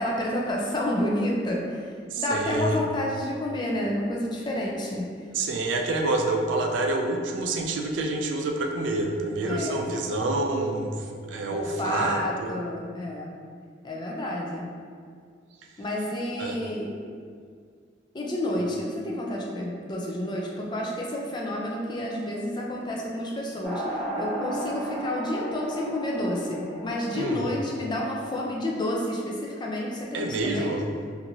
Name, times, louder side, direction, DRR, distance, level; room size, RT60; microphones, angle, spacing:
voice 1, 0.0-1.8 2.2-5.1 9.4-9.9 11.5-13.3 13.8-14.7 15.8-16.9 18.1-30.7, left 1 dB, 25° left, -2 dB, 0.4 m, -30 dB
voice 2, 2.1-2.8 5.3-12.5 16.4-16.6 27.1-27.5 30.1-30.9, right 2 dB, 75° right, 2 dB, 0.3 m, -27 dB
sound 1, 23.6-28.8, right 1 dB, ahead, 1.0 m, -35 dB
2.9 x 2.6 x 2.6 m, 2.1 s
head